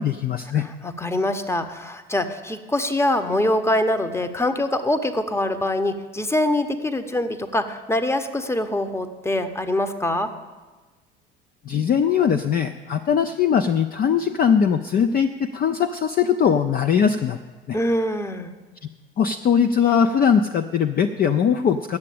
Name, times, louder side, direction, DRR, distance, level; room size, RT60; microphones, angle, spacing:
voice 1, 0.0-0.7 11.7-17.4 17.7-17.8 19.2-22.0, left 7 dB, 30° left, 9 dB, 0.5 m, -20 dB
voice 2, 0.5-10.3 17.7-18.5, left 1 dB, 10° left, 9 dB, 0.9 m, -24 dB
9.7 x 7.5 x 8.4 m, 1.3 s
hypercardioid pair, 65°, 30 cm